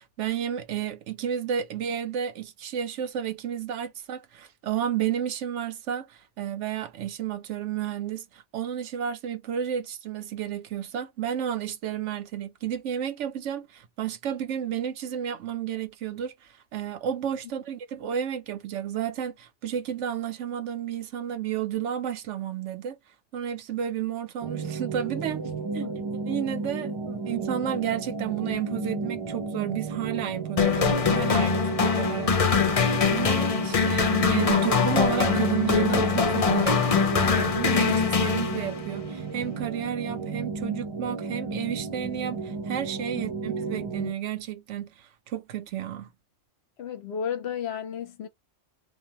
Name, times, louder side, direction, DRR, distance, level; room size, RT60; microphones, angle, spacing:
voice 1, 0.0-23.0 23.3-25.4 25.7-25.9 26.3-46.1, right 9 dB, 75° right, 0.9 m, -32 dB
sound 1, 24.4-44.1, right 4 dB, 35° right, 0.4 m, -33 dB
sound 2, 30.6-38.9, left 5 dB, 45° left, 0.5 m, -23 dB
voice 2, 43.1-43.6 46.8-48.3, left 8 dB, 65° left, 0.8 m, -33 dB
2.6 x 2.1 x 2.8 m
omnidirectional pair, 1.3 m